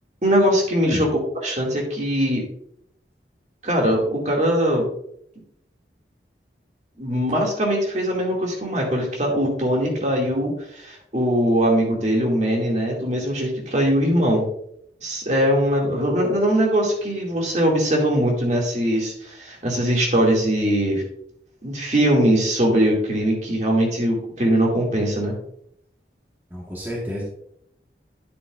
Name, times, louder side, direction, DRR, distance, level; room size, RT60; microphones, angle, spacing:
voice 1, 0.2-1.1 1.4-2.4 3.6-4.8 7.0-14.4 15.0-21.0 21.6-25.3, equal, 40° right, -1 dB, 2.1 m, -21 dB
voice 2, 26.5-27.2, equal, 10° right, -4 dB, 1.2 m, -29 dB
9.7 x 7.9 x 2.4 m, 0.71 s
head